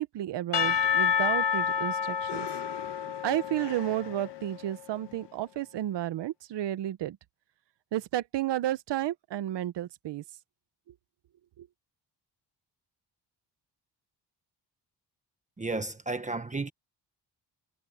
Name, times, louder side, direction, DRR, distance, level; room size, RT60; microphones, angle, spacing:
voice 1, 0.0-2.5 3.2-7.2 7.9-10.2 11.6-11.7, right 13 dB, 75° right, 1.0 m, -32 dB
Percussion / Church bell, 0.5-4.7, left 7 dB, 75° left, 1.7 m, -29 dB
voice 2, 15.6-16.7, right 3 dB, 15° right, 1.2 m, -33 dB
cardioid pair, 130°, 42 cm